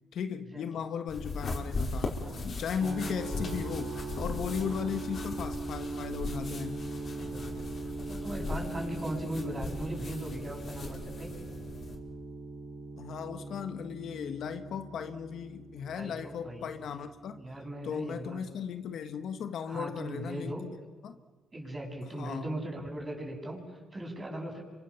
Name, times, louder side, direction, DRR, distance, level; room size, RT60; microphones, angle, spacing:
voice 1, 0.1-6.9 13.0-17.4 17.8-20.6 21.0-21.2 22.1-22.4, left 7 dB, 65° left, 9 dB, 1.6 m, -36 dB
sound 1, 1.1-12.0, left 3 dB, 50° left, 5.4 m, -39 dB
voice 2, 2.2-2.6 4.6-4.9 7.2-11.3 15.9-16.7 17.4-18.4 19.7-20.6 21.5-24.6, right 1 dB, 25° right, 1 dB, 7.7 m, -39 dB
sound 2, 2.8-18.7, right 3 dB, 55° right, 7.4 m, -41 dB
29.0 x 25.5 x 7.2 m, 1.4 s
cardioid pair, 90°, 0 cm